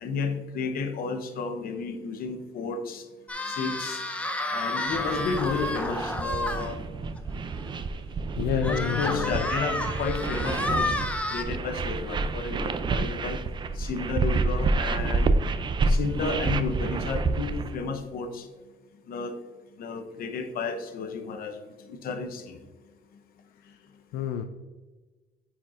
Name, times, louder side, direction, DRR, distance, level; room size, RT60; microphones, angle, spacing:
voice 1, 0.0-3.1 3.5-4.0 4.5-6.8 8.5-10.9 11.3-13.4 13.8-15.3 15.9-18.5 19.1-19.4 19.8-21.6 21.9-22.6, left 4 dB, 60° left, 6 dB, 0.8 m, -32 dB
sound 1, 3.3-6.7 7.2-7.3 7.6-7.7 8.6-11.4, left 2 dB, 10° left, 0.7 m, -30 dB
sound 2, 4.9-17.8, right 3 dB, 30° right, 0.4 m, -29 dB
voice 2, 7.9-9.5 23.5-24.4, left 9 dB, 80° left, 7 dB, 0.4 m, -32 dB
8.9 x 4.4 x 2.5 m, 1.3 s
cardioid pair, 110°, 17 cm